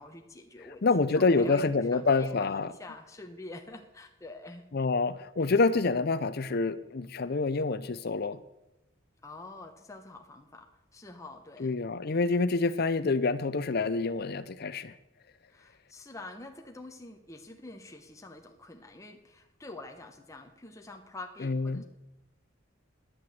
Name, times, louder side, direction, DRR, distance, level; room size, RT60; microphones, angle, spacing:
voice 1, 0.0-0.9 1.1-4.6 5.7-5.8 9.2-11.8 15.5-21.8, left 2 dB, 15° left, 4 dB, 1.0 m, -46 dB
voice 2, 0.8-2.7 4.7-8.4 11.6-14.9 21.4-21.8, left 3 dB, 50° left, 14 dB, 0.6 m, -27 dB
10.5 x 8.9 x 7.8 m, 0.95 s
head